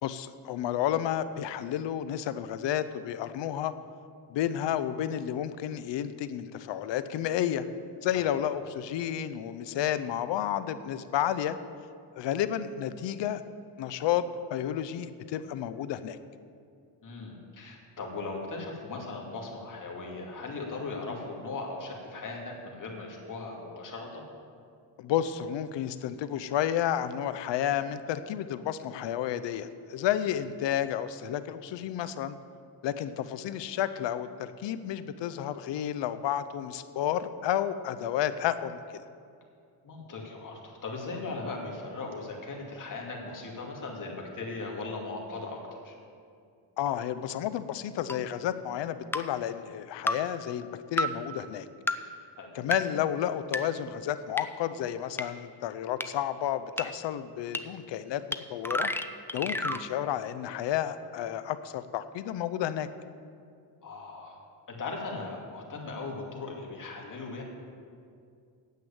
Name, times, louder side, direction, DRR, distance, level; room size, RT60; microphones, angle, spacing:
voice 1, 0.0-3.7 4.3-7.7 8.0-11.6 12.2-13.4 13.8-14.2 14.5-16.2 25.0-32.4 32.8-39.0 46.8-51.7 52.5-58.2 58.5-58.9 59.3-62.9, left 11 dB, 85° left, 12 dB, 0.7 m, -31 dB
voice 2, 17.0-24.3 39.8-45.9 52.4-52.5 63.8-64.4 64.7-67.4, left 3 dB, 45° left, -1 dB, 2.4 m, -38 dB
sound 1, 48.1-48.2 49.1-49.2 50.1-50.2 51.0-51.1 51.9-52.0 52.7-52.8 53.5-53.6 54.4-54.5 55.2-55.3 56.0-56.1 56.8-56.9 57.5-57.6 58.3-58.4 58.6-59.8, left 1 dB, 5° left, 0.4 m, -29 dB
9.4 x 7.9 x 8.7 m, 2.4 s
cardioid pair, 110°, 42 cm